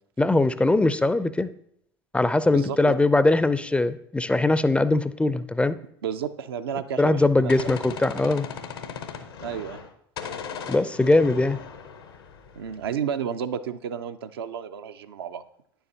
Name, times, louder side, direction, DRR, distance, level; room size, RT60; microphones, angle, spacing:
voice 1, 0.2-1.5 2.1-5.8 7.0-8.5 10.7-11.6, left 2 dB, 10° left, 14 dB, 0.4 m, -21 dB
voice 2, 2.5-3.1 6.0-7.5 9.4-9.8 12.6-15.4, right 8 dB, 75° right, 9 dB, 0.4 m, -32 dB
Gunshot gunfire, 7.0-9.9 10.2-12.9, left 7 dB, 75° left, 0.8 m, -37 dB
9.7 x 6.9 x 2.7 m, 0.69 s
figure-of-eight pair, 65°, 13 cm